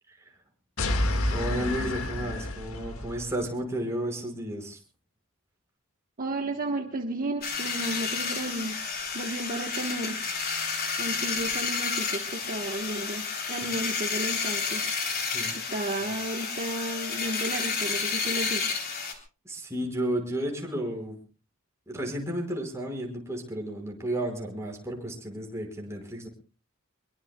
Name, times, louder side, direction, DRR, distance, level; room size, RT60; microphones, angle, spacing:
sound 1, 0.8-3.3, left 1 dB, 75° left, 1.9 m, -29 dB
voice 1, 1.3-4.8 15.2-15.6 16.0-16.1 19.5-21.2 21.9-26.3, right 1 dB, 15° right, 0 dB, 5.5 m, -33 dB
voice 2, 6.2-10.4 11.0-14.9 15.5-18.8, right 1 dB, 40° right, 3 dB, 1.5 m, -33 dB
sound 2, 7.4-19.1, left 5 dB, 45° left, 3.6 m, -31 dB
25.0 x 22.5 x 2.3 m, 0.35 s
head